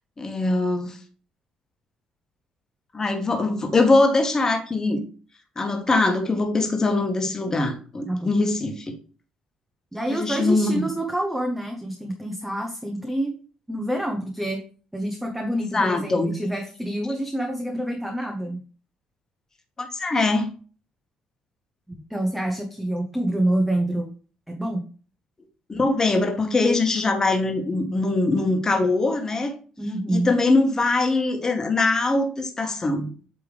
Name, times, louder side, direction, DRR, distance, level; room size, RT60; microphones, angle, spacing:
voice 1, 0.2-1.0 2.9-5.0 5.5-8.9 10.1-10.8 15.7-16.3 19.8-20.5 25.7-29.5 30.1-33.1, left 2 dB, 25° left, 4 dB, 1.5 m, -22 dB
voice 2, 9.9-13.4 13.7-14.6 14.9-18.6 21.9-24.1 24.5-24.9 29.8-30.3, right 1 dB, 5° right, 2 dB, 1.0 m, -27 dB
8.4 x 3.4 x 3.4 m, 0.39 s
cardioid pair, 95°, 2 cm